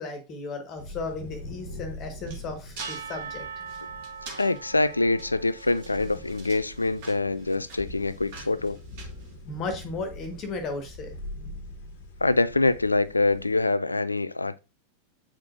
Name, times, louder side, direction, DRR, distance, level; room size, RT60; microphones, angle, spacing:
voice 1, 0.0-3.4 9.5-11.2, left 3 dB, 35° left, 1.4 m, -35 dB
sound 1, 0.8-13.6, left 1 dB, 55° left, 1.2 m, -43 dB
sound 2, 1.7-9.9, right 4 dB, 50° right, 1.8 m, -47 dB
Percussion / Church bell, 2.8-6.8, right 6 dB, 70° right, 0.5 m, -41 dB
voice 2, 4.4-8.8 12.2-14.6, left 2 dB, 80° left, 0.3 m, -25 dB
8.1 x 4.9 x 2.5 m
figure-of-eight pair, 90°, 0 cm